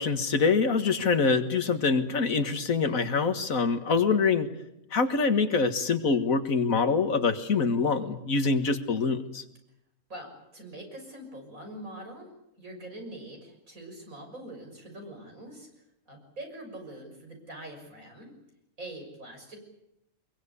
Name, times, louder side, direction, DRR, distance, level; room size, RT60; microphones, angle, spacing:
voice 1, 0.0-4.5 4.9-9.4, left 4 dB, 90° left, 9 dB, 2.1 m, -25 dB
voice 2, 10.1-12.3 12.6-15.7 16.1-18.3 18.8-19.6, right 1 dB, 85° right, 2 dB, 6.9 m, -43 dB
24.5 x 22.5 x 8.4 m, 0.83 s
omnidirectional pair, 1.4 m